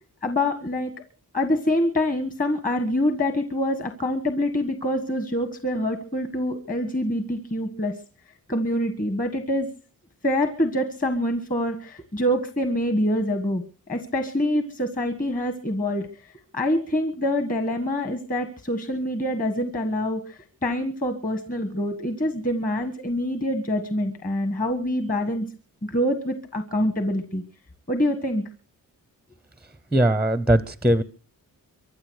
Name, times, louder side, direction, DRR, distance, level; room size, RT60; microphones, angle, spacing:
voice 1, 0.2-0.9 1.3-8.0 8.5-9.7 10.2-16.1 16.5-25.5 25.8-27.4 27.9-28.4, left 1 dB, 25° left, 7 dB, 1.5 m, -25 dB
voice 2, 29.9-31.0, right 1 dB, 5° right, 15 dB, 0.7 m, -20 dB
24.5 x 8.3 x 6.4 m, 0.40 s
wide cardioid pair, 170°, 35 cm